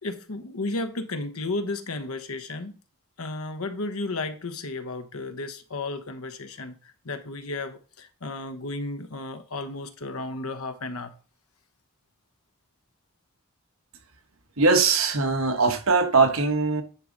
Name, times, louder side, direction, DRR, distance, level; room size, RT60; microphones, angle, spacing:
voice 1, 0.0-2.8 3.2-11.1, left 2 dB, 80° left, 1.1 m, -33 dB
voice 2, 14.6-16.8, right 4 dB, 70° right, 1.4 m, -21 dB
10.5 x 4.8 x 3.9 m
head